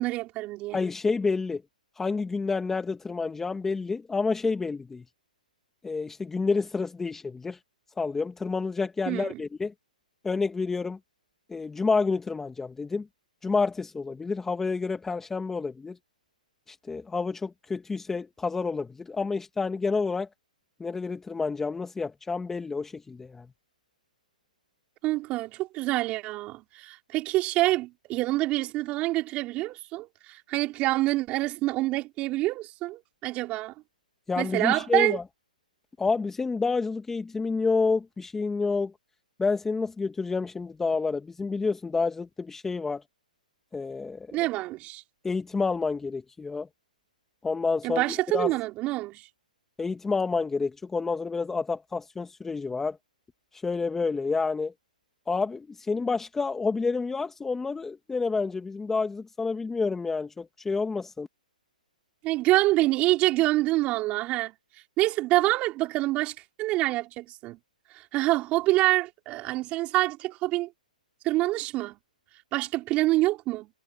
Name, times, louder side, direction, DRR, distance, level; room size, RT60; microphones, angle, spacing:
voice 1, 0.0-0.8 9.1-9.4 25.0-33.7 34.4-35.2 44.3-45.0 47.8-49.2 62.2-64.5 65.0-67.6 67.9-70.7 71.2-72.0 72.5-73.7, right 18 dB, 25° right, 5.0 m, -26 dB
voice 2, 0.7-1.6 2.0-5.0 5.8-7.6 8.0-9.7 10.2-11.0 11.5-13.1 13.4-16.0 16.7-20.3 20.8-23.5 34.3-35.2 36.0-38.9 39.4-43.0 43.7-44.4 45.2-46.7 47.4-48.5 49.8-53.0 53.5-54.7 55.3-61.3, left 4 dB, 10° left, 1.9 m, -29 dB
hypercardioid pair, 140°, 5 cm